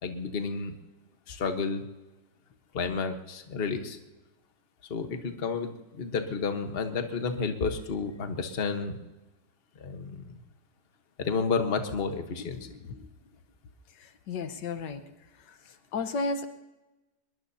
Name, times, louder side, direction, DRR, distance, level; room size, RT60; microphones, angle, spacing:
voice 1, 0.0-0.7 1.3-1.8 2.7-4.0 4.9-9.0 9.8-10.4 11.2-12.6, left 5 dB, 40° left, 6 dB, 1.3 m, -31 dB
voice 2, 12.4-13.1 13.9-15.0 15.4-16.5, left 3 dB, 80° left, 9 dB, 1.7 m, -35 dB
24.0 x 21.5 x 2.8 m, 1.1 s
omnidirectional pair, 1.8 m